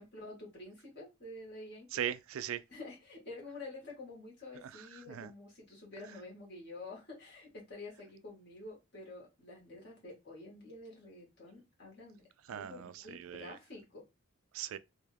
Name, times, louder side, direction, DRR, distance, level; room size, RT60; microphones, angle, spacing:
voice 1, 0.0-1.9 2.7-14.1, left 2 dB, 50° left, 2.1 m, -49 dB
voice 2, 1.9-2.6 5.1-5.3 12.5-13.5 14.5-14.8, right 9 dB, 70° right, 0.3 m, -39 dB
3.5 x 2.8 x 3.3 m
head